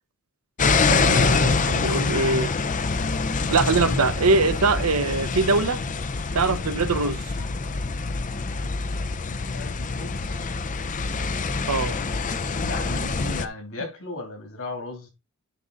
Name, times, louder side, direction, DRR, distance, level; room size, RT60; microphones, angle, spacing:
sound 1, 0.6-13.5, left 4 dB, 35° left, 0.6 m, -25 dB
voice 1, 0.9-2.5 3.5-5.8 6.3-7.2 11.7-12.0, right 3 dB, 75° right, 1.0 m, -22 dB
voice 2, 9.1-10.6 12.6-15.1, left 2 dB, 65° left, 2.9 m, -36 dB
10.0 x 3.8 x 4.0 m
head